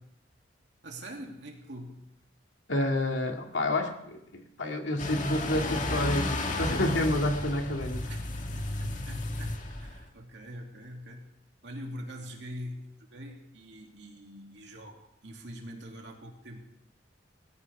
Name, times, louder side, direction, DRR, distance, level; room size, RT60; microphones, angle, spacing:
voice 1, 0.8-2.0 8.1-8.3 8.5-11.3 11.6-16.6, equal, 65° right, 1 dB, 2.8 m, -43 dB
voice 2, 2.7-8.1, left 1 dB, 90° left, 2 dB, 2.3 m, -29 dB
sound 1, 5.0-10.1, left 2 dB, 45° left, 1.8 m, -33 dB
19.5 x 15.5 x 3.6 m, 0.76 s
head